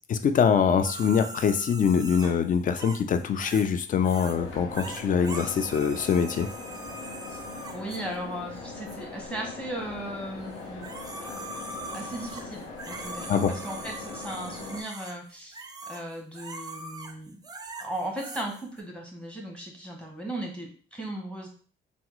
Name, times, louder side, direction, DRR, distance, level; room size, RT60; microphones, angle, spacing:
voice 1, 0.0-6.5 13.3-13.5, left 7 dB, 40° left, 9 dB, 0.4 m, -24 dB
sound 1, 0.8-3.8 4.0-4.4 4.7-8.0 8.9-9.0 10.5-18.8, right 2 dB, 20° right, 0.4 m, -41 dB
sound 2, 4.3-14.8, left 3 dB, 75° left, 0.7 m, -41 dB
voice 2, 7.3-10.9 11.2-11.4 11.9-17.4 17.8-21.5, right 1 dB, 5° left, -1 dB, 1.1 m, -37 dB
3.4 x 2.0 x 3.0 m, 0.41 s
cardioid pair, 90°, 20 cm